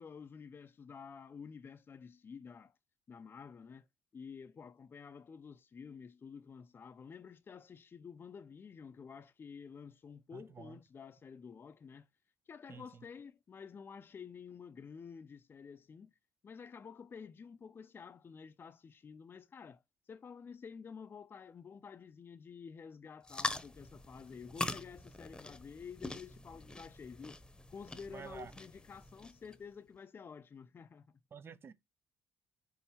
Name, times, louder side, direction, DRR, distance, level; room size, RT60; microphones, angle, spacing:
voice 1, 0.0-2.8 3.1-3.9 4.1-12.1 12.5-16.1 16.4-19.8 20.1-27.4 27.7-31.1, left 6 dB, 40° left, 0.6 m, -50 dB
voice 2, 10.3-10.8 12.7-13.0 28.1-28.5 31.3-31.7, right 6 dB, 45° right, 0.8 m, -50 dB
sound 1, 23.2-29.6, left 2 dB, 15° left, 1.0 m, -43 dB
5.6 x 3.9 x 4.5 m
supercardioid pair, 60°, 6 cm